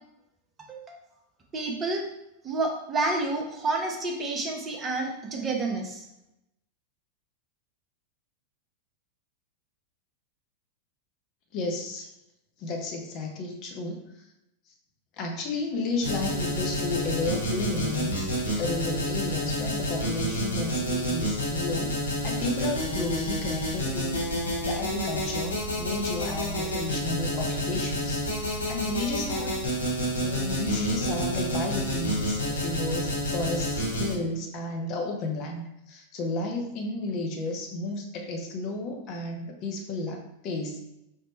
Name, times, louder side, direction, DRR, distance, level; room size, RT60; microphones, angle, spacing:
voice 1, 1.5-2.0 2.4-6.0, right 2 dB, 25° right, 2 dB, 0.6 m, -29 dB
voice 2, 11.5-12.1 12.6-14.3 15.2-18.2 18.6-24.2 24.6-29.6 30.2-40.8, left 2 dB, 40° left, 2 dB, 0.6 m, -32 dB
sound 1, 16.0-34.1, equal, 75° left, 1.1 m, -29 dB
5.0 x 2.1 x 3.0 m, 0.86 s
figure-of-eight pair, 90°, 0 cm